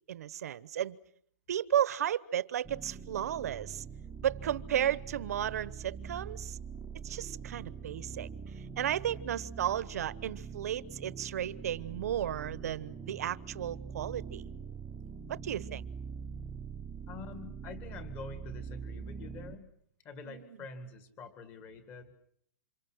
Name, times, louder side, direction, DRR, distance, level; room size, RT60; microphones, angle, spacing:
voice 1, 0.1-1.0 1.5-3.8 4.2-6.6 7.0-8.3 8.8-14.5 15.3-15.8 20.3-20.4, right 10 dB, 60° right, 1.1 m, -34 dB
sound 1, 2.6-19.6, right 6 dB, 5° right, 1.0 m, -43 dB
voice 2, 17.1-19.7 20.0-22.1, left 4 dB, 20° left, 2.1 m, -46 dB
29.0 x 27.0 x 6.4 m
hypercardioid pair, 180°, 10 cm